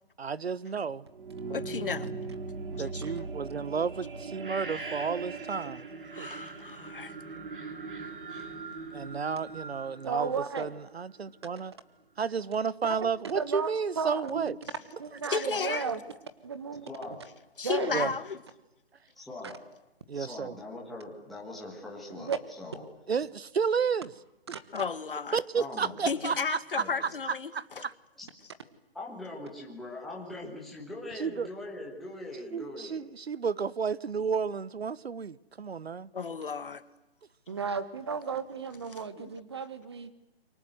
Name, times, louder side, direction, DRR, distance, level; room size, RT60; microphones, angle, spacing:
voice 1, 0.2-1.0 2.7-5.9 8.9-11.7 12.2-14.6 15.3-15.4 17.9-18.1 20.1-20.5 23.1-24.1 25.3-27.9 31.2-31.5 32.5-36.1, right 6 dB, 80° right, 1.2 m, -32 dB
sound 1, 1.1-10.9, right 4 dB, 55° right, 4.0 m, -40 dB
voice 2, 1.5-2.1 2.8-3.2 6.1-7.2 15.3-15.9 17.6-18.4 24.7-25.4 26.1-27.5 27.8-27.9 36.1-36.8 39.2-39.4, left 5 dB, 60° left, 1.9 m, -33 dB
voice 3, 10.0-10.7 13.0-13.7 13.9-14.5 15.0-16.0 16.4-16.9 17.6-18.1 19.4-19.5 22.2-22.4 24.5-24.6 37.5-40.1, right 5 dB, 25° right, 1.4 m, -34 dB
voice 4, 16.8-17.2 17.8-18.0 19.2-19.6 20.1-22.8 25.5-26.3 26.8-27.1 28.2-28.3 28.9-33.0, left 2 dB, ahead, 1.4 m, -42 dB
28.0 x 24.0 x 8.0 m
hypercardioid pair, 175°, 31 cm